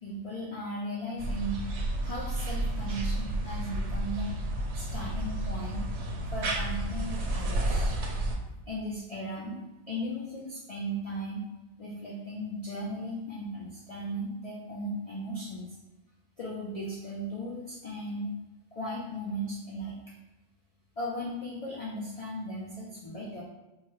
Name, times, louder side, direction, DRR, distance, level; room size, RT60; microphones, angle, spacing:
voice 1, 0.0-1.6 2.0-4.3 4.7-5.8 6.3-7.9 8.7-11.4 11.8-15.8 16.4-18.3 18.7-20.1 21.0-23.4, equal, 40° left, -5 dB, 0.5 m, -37 dB
sound 1, 1.2-8.4, right 1 dB, 70° right, 0.9 m, -31 dB
4.6 x 2.2 x 3.1 m, 1.0 s
omnidirectional pair, 1.2 m